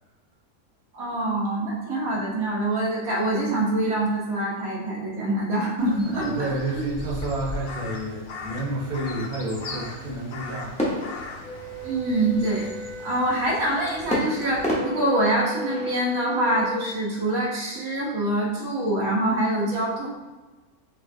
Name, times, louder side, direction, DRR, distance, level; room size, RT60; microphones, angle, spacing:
voice 1, 0.9-6.3 6.7-6.9 11.8-12.6 13.0-20.1, right 1 dB, 70° right, -5 dB, 1.5 m, -25 dB
Crow, 5.8-14.7, left 3 dB, 90° left, 0.4 m, -39 dB
voice 2, 6.2-10.9, right 2 dB, 45° right, -4 dB, 1.1 m, -30 dB
sound 1, 10.8-12.3 14.1-16.2, left 1 dB, 5° left, 0.7 m, -30 dB
Wind instrument woodwind instrument, 11.4-16.9, equal, 55° left, 1.3 m, -36 dB
5.7 x 3.1 x 2.7 m, 1.2 s
omnidirectional pair, 1.6 m